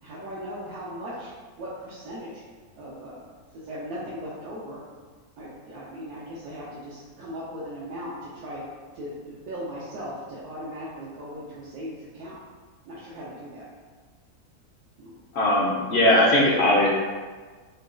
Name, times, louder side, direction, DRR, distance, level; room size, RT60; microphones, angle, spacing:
voice 1, 0.0-2.4 2.7-3.3 3.5-4.8 5.4-8.6 8.9-12.4 12.9-13.7 15.0-15.2, equal, 75° right, -8 dB, 1.1 m, -38 dB
voice 2, 15.3-16.9, left 1 dB, 65° left, -5 dB, 0.6 m, -19 dB
3.9 x 2.2 x 2.4 m, 1.4 s
omnidirectional pair, 1.6 m